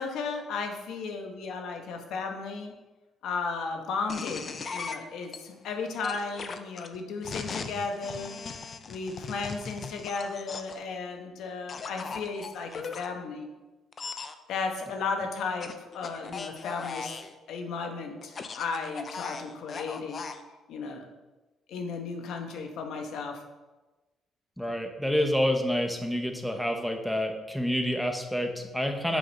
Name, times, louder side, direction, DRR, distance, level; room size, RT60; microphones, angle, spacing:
voice 1, 0.0-2.8 3.2-4.4 4.7-8.3 8.9-13.5 14.5-17.1 17.5-20.2 20.7-21.1 21.7-23.4, left 4 dB, 70° left, 4 dB, 1.1 m, -34 dB
sound 1, 4.1-5.4 6.0-10.8 11.7-13.1 13.9-14.3 15.6-17.3 18.2-20.4, left 5 dB, 40° left, 0.5 m, -38 dB
voice 2, 24.6-29.2, equal, ahead, 4 dB, 0.9 m, -28 dB
6.3 x 4.9 x 5.4 m, 1.1 s
cardioid pair, 115°, 0 cm